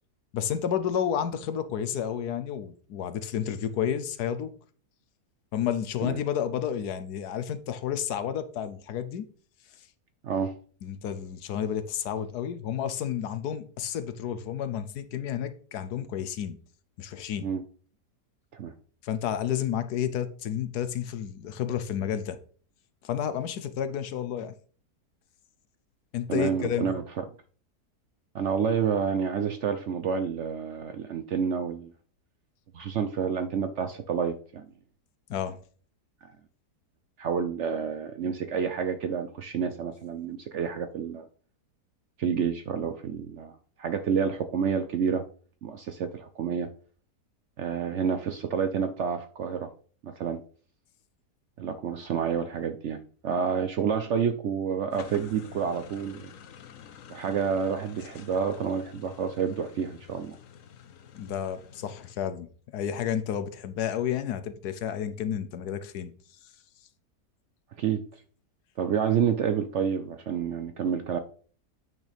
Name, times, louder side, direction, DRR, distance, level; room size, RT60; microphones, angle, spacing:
voice 1, 0.3-4.5 5.5-9.3 10.8-16.6 17.0-17.5 19.0-22.4 23.0-24.5 26.1-26.9 35.3-35.6 61.1-62.5 62.7-66.1, left 9 dB, 80° left, 1.3 m, -31 dB
voice 2, 10.2-10.6 17.4-17.6 18.5-18.7 26.3-27.2 28.3-31.9 32.7-34.7 37.2-41.2 42.2-45.2 45.6-46.7 47.6-49.7 50.0-50.4 51.6-56.3 57.1-60.4 67.8-68.0 68.8-71.2, right 7 dB, 65° right, 0.7 m, -29 dB
sound 1, 54.9-62.1, left 8 dB, 60° left, 1.1 m, -49 dB
9.0 x 6.3 x 3.4 m
omnidirectional pair, 1.7 m